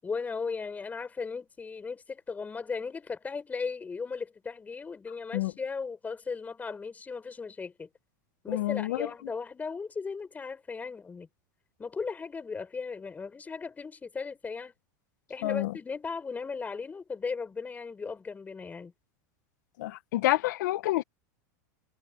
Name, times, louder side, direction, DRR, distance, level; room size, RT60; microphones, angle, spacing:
voice 1, 0.0-7.9 8.4-11.3 11.8-14.7 15.3-18.9, left 5 dB, 15° left, 7.3 m, -37 dB
voice 2, 8.5-9.1 15.4-15.7 19.8-21.0, left 16 dB, 75° left, 1.2 m, -28 dB
supercardioid pair, 130°, 10 cm